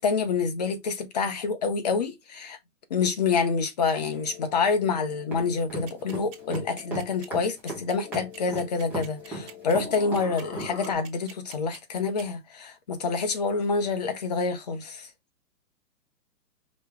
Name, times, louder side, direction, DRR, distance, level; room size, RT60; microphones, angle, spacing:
voice 1, 0.0-2.6 2.9-15.1, left 5 dB, 25° left, 0.6 m, -27 dB
sound 1, 4.1-10.9, left 6 dB, 55° left, 1.5 m, -44 dB
sound 2, 5.3-10.7, right 2 dB, 5° right, 1.0 m, -35 dB
sound 3, 5.9-12.2, right 7 dB, 65° right, 1.6 m, -45 dB
5.0 x 2.9 x 3.4 m
hypercardioid pair, 160°, 49 cm